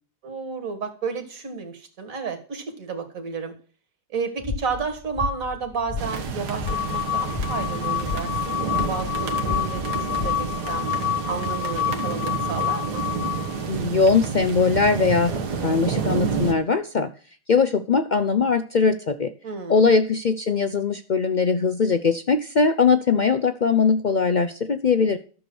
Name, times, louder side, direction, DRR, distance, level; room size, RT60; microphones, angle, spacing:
voice 1, 0.2-3.5 4.1-10.9 11.3-13.0 19.4-19.9, right 5 dB, 60° right, 6 dB, 2.3 m, -31 dB
sound 1, 4.4-10.8, left 5 dB, 30° left, 0.6 m, -34 dB
sound 2, 6.0-16.5, right 6 dB, 90° right, 1.9 m, -29 dB
sound 3, 6.7-13.7, left 12 dB, 50° left, 1.0 m, -28 dB
voice 2, 13.7-15.3 15.6-17.1 17.5-19.3 19.7-25.2, left 5 dB, 75° left, 10 dB, 0.4 m, -20 dB
12.0 x 6.9 x 6.1 m, 0.39 s
omnidirectional pair, 1.7 m